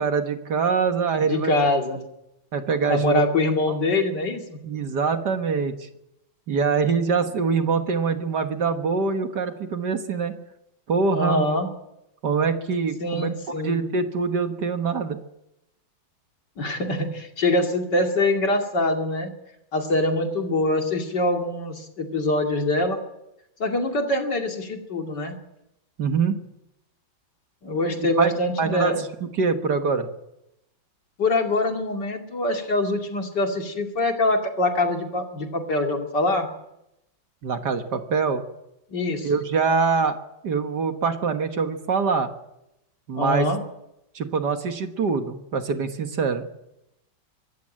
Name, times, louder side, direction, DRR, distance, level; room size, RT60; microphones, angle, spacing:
voice 1, 0.0-1.5 2.5-3.2 4.6-5.7 6.5-10.4 10.9-11.5 12.2-15.2 26.0-26.4 28.0-28.3 28.6-28.9 29.2-30.1 37.4-38.4 39.2-40.2 40.4-42.3 43.1-43.5 44.2-46.4, right 5 dB, 55° right, 7 dB, 1.9 m, -24 dB
voice 2, 1.2-2.0 2.9-4.6 11.1-11.7 13.0-13.8 16.6-19.3 19.7-23.0 23.6-25.4 27.6-29.0 31.2-36.5 38.9-39.3 43.2-43.6, left 2 dB, 55° left, 3 dB, 3.0 m, -24 dB
24.0 x 14.0 x 8.8 m, 0.87 s
omnidirectional pair, 2.2 m